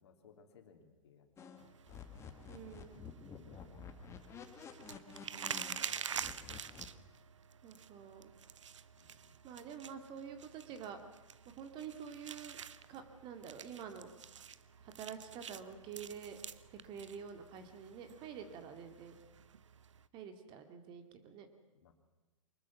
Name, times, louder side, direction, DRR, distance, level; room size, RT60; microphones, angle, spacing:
voice 1, 0.0-2.1 3.3-4.0 4.8-6.7 8.9-9.4 21.7-21.9, left 6 dB, 55° left, 5 dB, 3.3 m, -63 dB
sound 1, 1.4-6.9, left 6 dB, 15° left, 2.0 m, -51 dB
sound 2, 1.6-20.1, right 8 dB, 65° right, 0.9 m, -48 dB
voice 2, 2.5-3.0 7.6-8.3 9.4-11.0 11.6-12.6 12.9-14.1 14.8-16.4 16.8-19.1 20.1-21.5, right 7 dB, 30° right, 8 dB, 2.3 m, -48 dB
24.5 x 21.0 x 6.0 m, 1.2 s
figure-of-eight pair, 120°, 17 cm